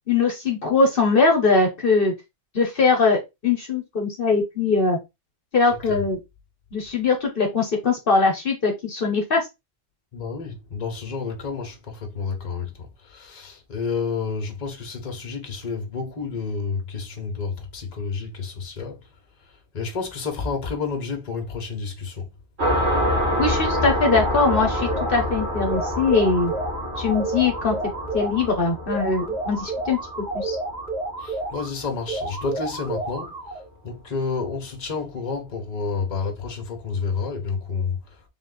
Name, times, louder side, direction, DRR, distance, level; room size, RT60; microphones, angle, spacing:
voice 1, 0.1-2.1 2.5-5.0 5.5-6.2 6.7-9.5 23.4-26.5 27.0-27.7 28.1-30.0 30.3-30.6, left 4 dB, 55° left, 1.1 m, -21 dB
voice 2, 10.1-12.7 13.1-19.0 19.7-22.2 31.2-33.4 33.8-38.0, left 5 dB, 40° left, 1.1 m, -30 dB
sound 1, 22.6-31.8, left 1 dB, 70° right, 1.5 m, -27 dB
sound 2, 24.1-25.3 25.7-28.5 28.9-31.7 32.1-33.7, right 2 dB, 40° right, 1.4 m, -31 dB
3.7 x 2.5 x 3.9 m
omnidirectional pair, 1.2 m